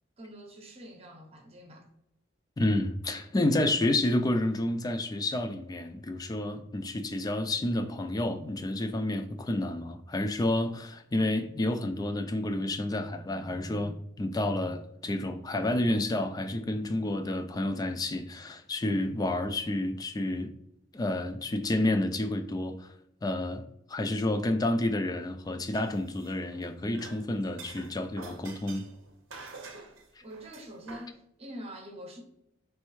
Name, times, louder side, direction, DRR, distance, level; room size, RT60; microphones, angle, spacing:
voice 1, 0.2-1.9 30.2-32.2, equal, 30° right, 0.8 m, -45 dB
voice 2, 2.6-20.5 20.9-22.9 23.2-28.8, left 1 dB, 20° left, 0.3 m, -30 dB
sound 1, 25.7-26.7 26.9-31.1, right 3 dB, 80° right, 0.7 m, -47 dB
4.4 x 3.2 x 3.1 m
head